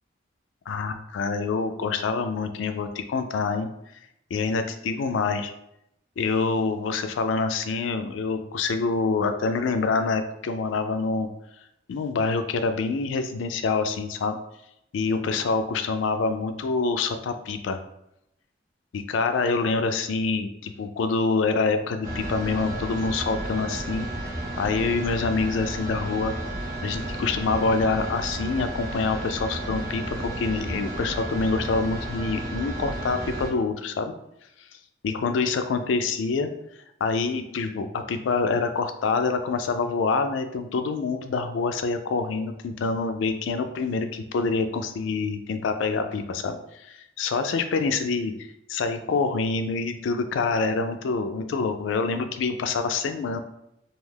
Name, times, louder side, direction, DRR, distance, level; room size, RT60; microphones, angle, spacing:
voice 1, 0.7-3.7 4.3-5.5 6.2-11.3 11.9-14.4 14.9-17.8 18.9-24.1 24.6-26.3 26.8-34.1 35.0-36.5 37.0-48.3 48.7-53.4, left 4 dB, 90° left, 8 dB, 0.3 m, -26 dB
sound 1, 22.0-33.5, right 1 dB, 20° right, 0.6 m, -33 dB
2.4 x 2.3 x 3.3 m, 0.81 s
head